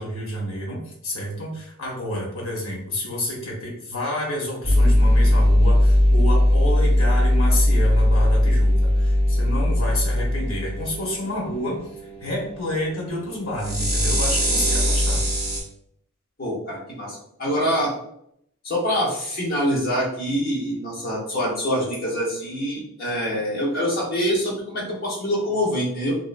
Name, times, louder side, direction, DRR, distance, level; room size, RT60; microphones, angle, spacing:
voice 1, 0.0-11.8 12.2-15.2, left 1 dB, 65° left, -3 dB, 1.0 m, -29 dB
sound 1, 4.6-15.6, left 1 dB, 15° right, 0.6 m, -19 dB
voice 2, 16.4-17.9 18.6-26.2, equal, 45° left, -5 dB, 1.0 m, -25 dB
2.9 x 2.2 x 2.5 m, 0.73 s
head